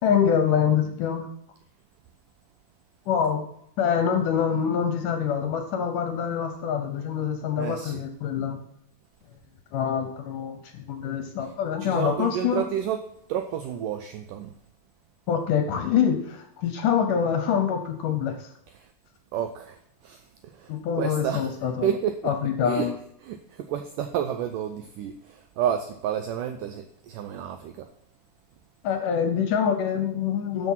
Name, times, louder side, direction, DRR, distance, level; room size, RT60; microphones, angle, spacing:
voice 1, 0.0-1.3 3.1-3.5 3.8-8.6 9.7-12.6 15.3-18.5 20.7-21.9 22.2-22.9 28.8-30.7, left 8 dB, 70° left, 7 dB, 2.1 m, -25 dB
voice 2, 7.6-8.0 11.8-13.0 13.3-14.5 18.8-18.9 19.3-19.8 20.0-21.5 21.8-22.3 22.6-22.9 23.2-27.9, right 9 dB, 90° right, 8 dB, 1.8 m, -30 dB
12.0 x 6.1 x 5.7 m, 0.73 s
omnidirectional pair, 4.6 m